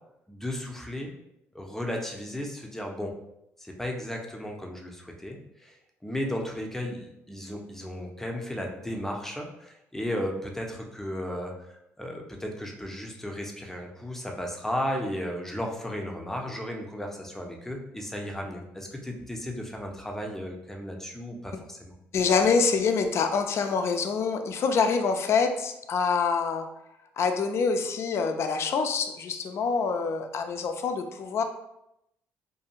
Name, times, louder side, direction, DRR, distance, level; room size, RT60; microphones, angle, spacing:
voice 1, 0.3-1.1 1.5-3.1 3.6-5.8 6.0-21.9, equal, 5° left, 1 dB, 0.6 m, -35 dB
voice 2, 22.1-26.7 27.2-31.4, left 5 dB, 55° left, 6 dB, 0.4 m, -26 dB
2.6 x 2.4 x 2.9 m, 0.84 s
supercardioid pair, 70°, 5 cm